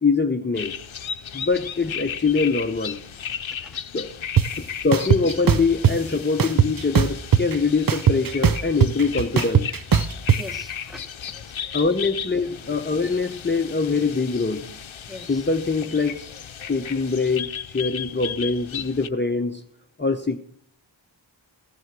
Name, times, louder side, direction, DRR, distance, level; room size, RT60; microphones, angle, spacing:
voice 1, 0.0-0.8 1.3-3.0 3.9-4.1 4.6-9.7 11.7-14.7 15.3-16.2 16.7-19.6 20.0-20.4, left 4 dB, 25° left, 0.8 m, -23 dB
sound 1, 0.5-19.1, left 8 dB, 85° left, 0.7 m, -35 dB
voice 2, 3.3-3.8 10.4-11.8 15.1-15.5, left 1 dB, ahead, 1.2 m, -43 dB
sound 2, 4.4-4.5 4.9-5.9 6.4-7.6 7.9-10.4, right 8 dB, 50° right, 0.6 m, -18 dB
15.0 x 7.9 x 6.0 m
wide cardioid pair, 60°, 46 cm